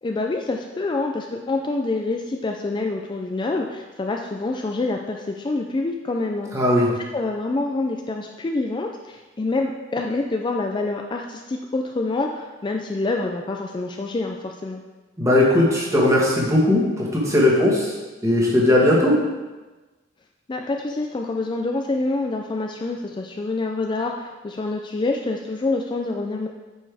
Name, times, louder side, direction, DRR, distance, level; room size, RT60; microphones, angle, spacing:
voice 1, 0.0-6.5 6.9-14.8 20.5-26.5, left 2 dB, 25° left, 2 dB, 0.4 m, -26 dB
voice 2, 6.5-6.9 15.2-17.9 18.2-19.2, left 1 dB, 15° right, -3 dB, 1.5 m, -18 dB
8.5 x 5.3 x 3.5 m, 1.2 s
head